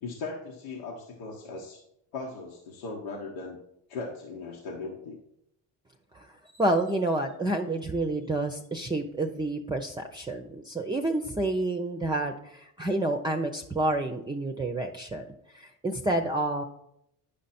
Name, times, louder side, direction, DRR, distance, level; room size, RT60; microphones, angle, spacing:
voice 1, 0.0-1.8 2.1-3.6 3.9-5.2, left 3 dB, 80° left, -1 dB, 1.2 m, -38 dB
voice 2, 6.5-15.3 15.5-16.6, right 2 dB, 10° right, 3 dB, 0.6 m, -29 dB
10.0 x 5.2 x 4.3 m, 0.79 s
hypercardioid pair, 60°, 45 cm